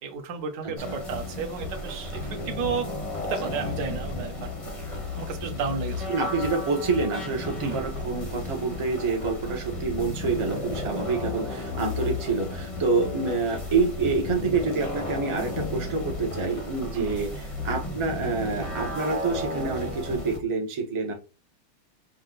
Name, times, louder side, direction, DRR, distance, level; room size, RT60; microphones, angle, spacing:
voice 1, 0.0-2.9 3.2-4.5 4.9-6.2 7.6-7.8 16.9-17.2, right 5 dB, 55° right, 1.4 m, -33 dB
sound 1, 0.8-20.4, left 2 dB, 25° left, 0.6 m, -33 dB
voice 2, 6.1-17.3 17.6-21.1, right 4 dB, 30° right, 0.5 m, -27 dB
5.4 x 2.4 x 3.8 m
omnidirectional pair, 2.4 m